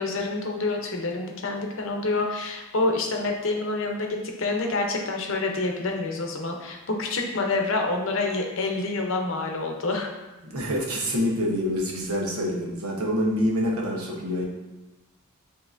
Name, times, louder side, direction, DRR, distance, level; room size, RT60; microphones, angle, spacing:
voice 1, 0.0-10.1, left 3 dB, 65° left, 2 dB, 0.7 m, -27 dB
voice 2, 10.4-14.5, equal, 80° right, -2 dB, 1.0 m, -26 dB
7.3 x 2.8 x 2.5 m, 1.1 s
head